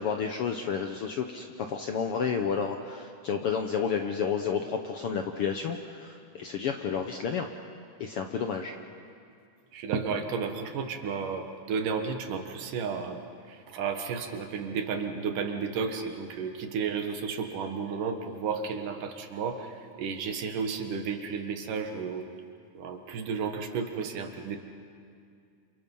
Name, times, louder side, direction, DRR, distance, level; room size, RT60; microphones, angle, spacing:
voice 1, 0.0-7.5 8.0-8.7, left 6 dB, 65° left, 5 dB, 1.4 m, -31 dB
voice 2, 9.7-13.2 13.5-22.2 22.7-24.6, right 5 dB, 85° right, 5 dB, 3.2 m, -32 dB
29.0 x 28.0 x 5.5 m, 2.3 s
omnidirectional pair, 3.6 m